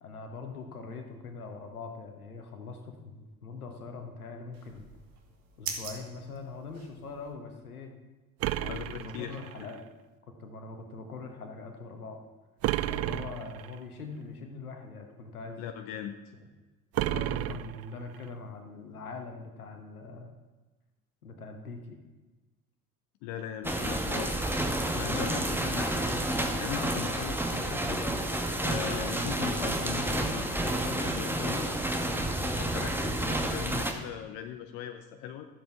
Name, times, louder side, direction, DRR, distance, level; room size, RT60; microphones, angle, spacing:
voice 1, 0.0-4.9 5.6-7.9 8.5-9.8 10.4-12.2 12.9-15.6 17.0-20.3 21.2-22.0, left 4 dB, 85° left, 4 dB, 1.3 m, -42 dB
sound 1, 4.5-7.3, right 5 dB, 55° right, 1.8 m, -43 dB
sound 2, 8.4-9.8 12.6-13.8 16.9-18.3, right 14 dB, 35° right, 0.4 m, -32 dB
voice 2, 8.6-9.4 15.6-16.2 17.1-17.2 23.2-24.5 24.9-26.1 26.6-28.1 28.6-31.7 32.6-35.5, left 9 dB, 60° left, 6 dB, 0.8 m, -39 dB
sound 3, 23.6-33.9, right 1 dB, 5° right, 1.3 m, -30 dB
12.0 x 7.7 x 4.7 m, 1.2 s
figure-of-eight pair, 55°, 43 cm